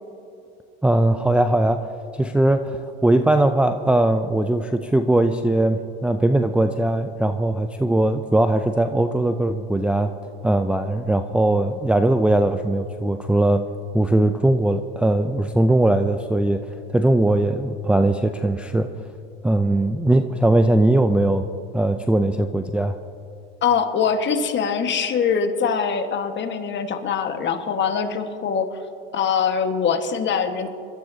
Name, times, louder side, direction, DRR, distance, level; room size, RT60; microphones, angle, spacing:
voice 1, 0.8-10.2 10.4-13.6 13.9-18.9 19.4-21.5 21.7-23.0, right 1 dB, 5° right, 6 dB, 0.4 m, -20 dB
voice 2, 23.6-28.8 29.1-30.7, left 6 dB, 40° left, 6 dB, 1.5 m, -23 dB
25.0 x 13.0 x 2.8 m, 2.6 s
supercardioid pair, 95°, 30 cm